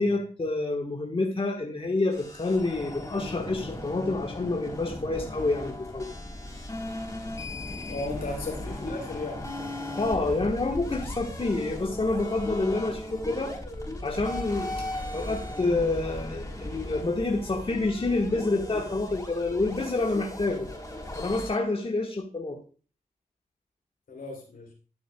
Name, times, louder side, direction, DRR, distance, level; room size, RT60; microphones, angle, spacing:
voice 1, 0.0-6.1 10.0-13.6 14.0-14.7 15.1-20.7 21.1-22.6, left 2 dB, 40° left, 1 dB, 1.4 m, -28 dB
sound 1, 2.1-21.5, left 1 dB, 20° left, 3.6 m, -37 dB
voice 2, 7.9-9.5 24.1-24.7, left 2 dB, 80° left, 1 dB, 3.0 m, -35 dB
12.0 x 6.4 x 2.3 m, 0.37 s
cardioid pair, 45°, 15 cm